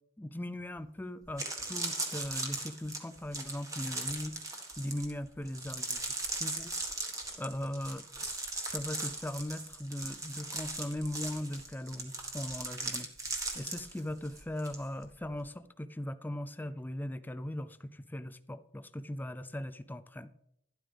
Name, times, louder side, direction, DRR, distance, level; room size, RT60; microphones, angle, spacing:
voice 1, 0.2-4.4 4.8-6.0 6.4-6.8 7.4-8.4 8.7-13.1 13.5-20.3, left 1 dB, 10° left, 12 dB, 0.5 m, -39 dB
sound 1, 0.8-0.9 1.2-14.8 15.0-15.4, right 2 dB, 20° right, 1.6 m, -38 dB
12.5 x 11.5 x 3.5 m, 0.75 s
head